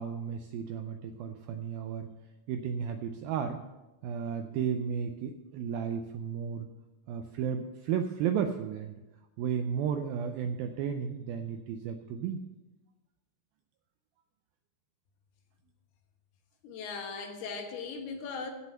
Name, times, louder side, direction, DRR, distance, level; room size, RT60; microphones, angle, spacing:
voice 1, 0.0-2.1 2.5-3.6 4.0-6.7 7.1-9.0 9.4-12.5, right 7 dB, 90° right, 7 dB, 2.1 m, -33 dB
voice 2, 16.6-18.5, left 5 dB, 70° left, 4 dB, 3.1 m, -38 dB
15.5 x 6.2 x 5.6 m, 1.1 s
omnidirectional pair, 4.9 m